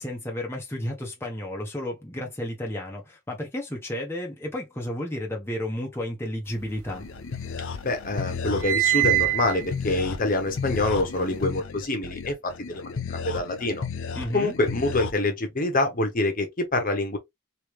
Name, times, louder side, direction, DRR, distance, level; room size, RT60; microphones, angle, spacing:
voice 1, 0.0-7.0 14.1-14.5, left 1 dB, 10° left, 0.8 m, -32 dB
sound 1, 6.6-7.7 8.0-11.4, right 20 dB, 65° right, 0.4 m, -27 dB
sound 2, 6.9-15.1, left 5 dB, 60° left, 0.4 m, -34 dB
voice 2, 7.8-13.8 14.3-17.2, left 2 dB, 40° left, 1.0 m, -26 dB
3.1 x 3.0 x 3.2 m
head